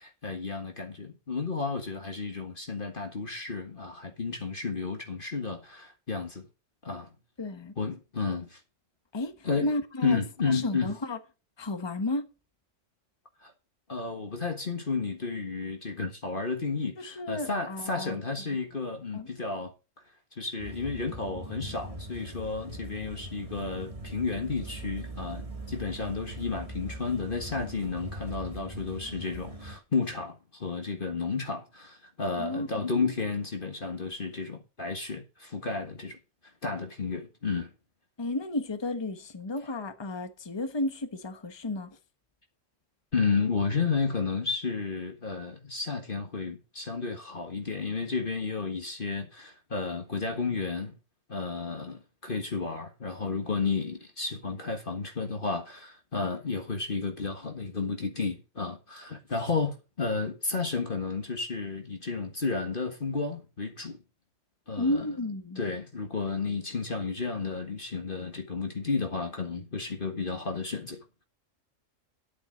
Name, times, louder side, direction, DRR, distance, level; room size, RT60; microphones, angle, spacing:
voice 1, 0.0-6.5 6.8-7.1 7.8-8.6 9.4-9.7 10.0-10.9 13.4-13.5 13.9-19.7 20.3-36.2 36.6-37.7 43.1-51.0 51.3-64.0 64.7-65.0 65.6-71.2, left 4 dB, 40° left, 1.8 m, -32 dB
voice 2, 7.4-7.7 9.1-10.2 10.5-11.2 11.6-12.3 17.0-18.2 19.1-19.3 32.4-32.7 38.2-42.0 64.8-65.6, left 2 dB, 20° left, 1.2 m, -32 dB
sound 1, 20.6-29.8, right 1 dB, 25° right, 1.8 m, -41 dB
10.5 x 8.8 x 5.1 m
omnidirectional pair, 1.4 m